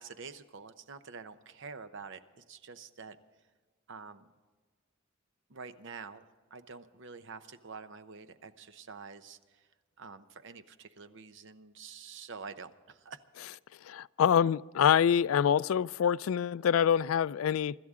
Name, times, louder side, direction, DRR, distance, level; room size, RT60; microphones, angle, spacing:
voice 1, 0.0-3.2 3.9-4.3 5.5-6.2 6.5-9.7 10.0-13.2, right 5 dB, 65° right, 0.8 m, -47 dB
voice 2, 13.8-17.8, left 8 dB, 80° left, 0.3 m, -26 dB
25.0 x 12.5 x 3.7 m
head